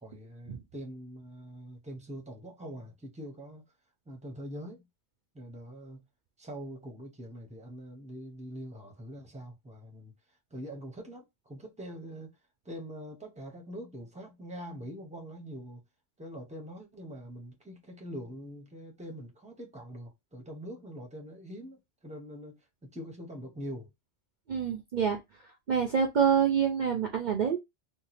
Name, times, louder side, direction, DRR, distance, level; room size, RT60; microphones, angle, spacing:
voice 1, 0.0-3.6 4.1-4.8 5.3-6.0 6.4-10.1 10.5-12.3 12.6-15.8 16.2-23.9, equal, 5° right, 0.8 m, -43 dB
voice 2, 24.5-25.2 25.7-27.6, right 7 dB, 55° right, 0.6 m, -26 dB
3.1 x 2.1 x 4.0 m
omnidirectional pair, 1.1 m